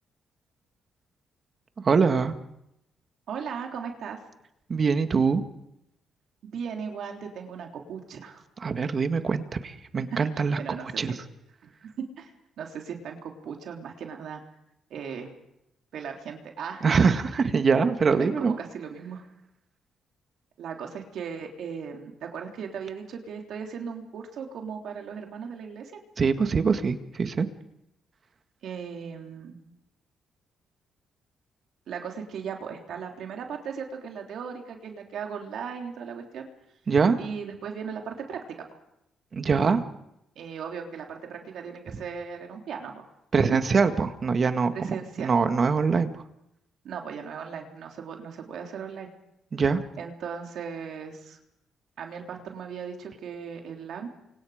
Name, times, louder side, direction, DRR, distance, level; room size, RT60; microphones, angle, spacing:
voice 1, 1.8-2.4 4.7-5.4 8.6-10.6 11.0-11.1 16.8-18.5 26.2-27.5 36.9-37.2 39.3-39.8 43.3-44.7 45.2-46.1 49.5-49.8, right 5 dB, 40° right, 8 dB, 1.9 m, -23 dB
voice 2, 3.3-4.2 6.4-8.4 10.1-10.3 10.6-11.2 11.6-11.9 12.2-14.4 14.9-15.3 15.9-16.9 18.1-19.2 20.6-26.0 28.6-29.6 31.9-36.5 37.2-38.7 40.4-43.1 43.3-43.4 44.7-45.3 46.8-49.1 50.0-51.4 52.0-54.1, right 6 dB, 70° right, 2 dB, 3.5 m, -37 dB
29.0 x 24.5 x 5.1 m, 0.82 s
cardioid pair, 90°, 0 cm